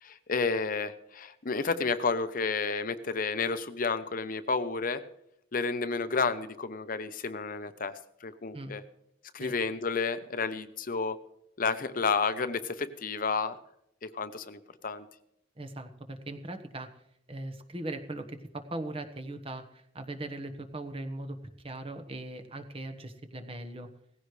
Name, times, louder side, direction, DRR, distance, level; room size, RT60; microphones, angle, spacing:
voice 1, 0.0-5.0 5.5-7.9 8.2-8.8 9.3-11.2 11.6-13.6 14.0-15.1, left 4 dB, 50° left, 11 dB, 0.8 m, -31 dB
voice 2, 15.6-16.9 17.3-21.4 21.6-23.9, right 2 dB, 30° right, 6 dB, 1.2 m, -39 dB
18.0 x 15.5 x 3.3 m, 0.77 s
head